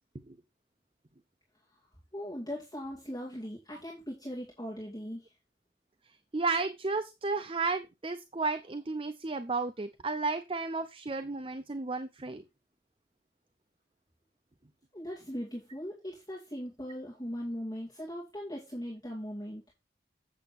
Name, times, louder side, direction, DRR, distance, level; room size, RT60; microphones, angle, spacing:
voice 1, 2.1-5.3 14.9-19.7, equal, 20° left, -4 dB, 2.4 m, -39 dB
voice 2, 6.3-12.4, right 3 dB, 30° right, 9 dB, 0.5 m, -33 dB
8.5 x 6.8 x 4.2 m, 0.24 s
head